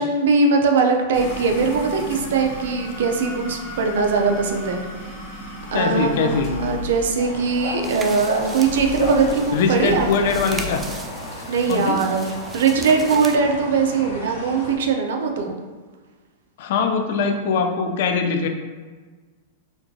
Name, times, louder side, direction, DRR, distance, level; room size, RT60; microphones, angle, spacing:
voice 1, 0.0-4.8 5.7-10.3 11.5-15.6, right 4 dB, 75° right, 3 dB, 0.5 m, -21 dB
sound 1, 1.1-10.8, left 2 dB, 45° left, 1.0 m, -35 dB
voice 2, 5.7-6.5 9.5-10.8 11.7-12.0 16.6-18.5, left 5 dB, 60° left, 5 dB, 0.4 m, -22 dB
sound 2, 7.2-14.8, equal, 90° left, 1.1 m, -33 dB
sound 3, 7.8-13.4, right 3 dB, 15° right, 0.3 m, -38 dB
4.3 x 2.3 x 2.7 m, 1.4 s
hypercardioid pair, 140°, 0 cm